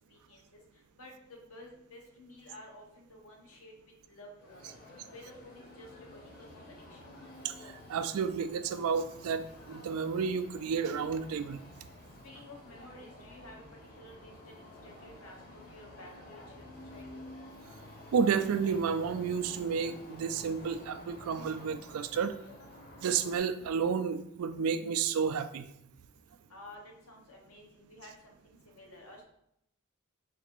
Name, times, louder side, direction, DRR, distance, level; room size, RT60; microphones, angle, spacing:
voice 1, 0.1-0.6 1.0-3.7 4.1-4.7 5.1-7.0 12.2-13.6 14.0-17.3 26.5-29.2, left 1 dB, 85° left, 0 dB, 1.0 m, -52 dB
sound 1, 4.4-23.4, left 1 dB, 45° left, 0.9 m, -50 dB
voice 2, 7.9-11.6 18.1-22.4 23.0-25.7, right 6 dB, 85° right, 11 dB, 0.3 m, -31 dB
4.0 x 2.5 x 4.4 m, 0.77 s
head